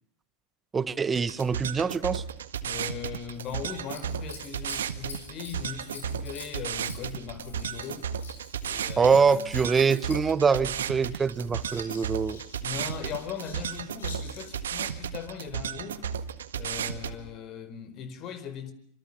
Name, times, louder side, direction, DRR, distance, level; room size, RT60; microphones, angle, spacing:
voice 1, 0.7-2.2 9.0-12.4, right 5 dB, 20° right, 1.5 m, -24 dB
sound 1, 1.1-17.1, right 8 dB, 80° right, 1.7 m, -34 dB
voice 2, 2.6-8.1 8.6-9.5 12.6-16.0 16.5-18.7, left 7 dB, 45° left, 4.7 m, -39 dB
Scissors, 3.3-14.7 16.6-17.3 18.0-18.1, left 4 dB, 80° left, 7.0 m, -47 dB
26.0 x 26.0 x 7.1 m
hypercardioid pair, 90°, 0 cm